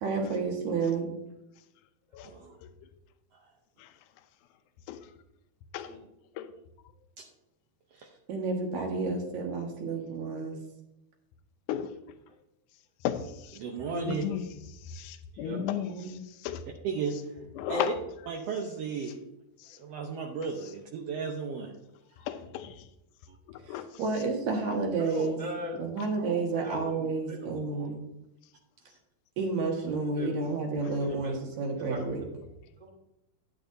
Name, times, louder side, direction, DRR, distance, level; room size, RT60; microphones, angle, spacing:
voice 1, 0.0-1.1 8.3-10.6 15.5-16.1 23.7-25.4 25.8-28.0 29.4-32.2, right 4 dB, 60° right, 2.9 m, -31 dB
voice 2, 2.2-2.6 3.3-3.5 7.2-7.3 7.9-8.1 13.6-14.3 16.8-17.1 17.7-17.9 18.3-19.1 19.8-21.7 23.3-23.4 28.8-29.0, right 5 dB, 75° right, 1.4 m, -34 dB
voice 3, 11.7-12.0 13.0-13.1 13.9-14.4 15.0-15.9 16.5-16.6 17.6-17.9 22.3-22.7 23.7-23.9, left 11 dB, 80° left, 1.9 m, -33 dB
voice 4, 25.0-25.8 26.2-27.9 30.1-30.6 31.0-31.3 31.8-32.0 32.8-32.9, left 1 dB, 15° right, 1.9 m, -41 dB
11.5 x 10.5 x 2.7 m
omnidirectional pair, 4.1 m